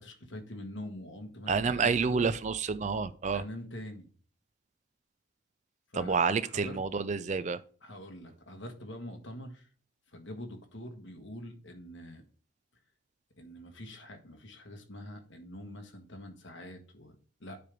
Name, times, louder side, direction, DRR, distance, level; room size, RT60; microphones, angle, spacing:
voice 1, 0.0-2.3 3.3-4.1 5.9-6.8 7.8-9.7 10.1-12.2 13.4-17.6, left 1 dB, 60° left, 4 dB, 1.4 m, -45 dB
voice 2, 1.5-3.4 5.9-7.6, right 5 dB, 35° right, 13 dB, 0.4 m, -29 dB
9.4 x 3.4 x 5.2 m, 0.42 s
head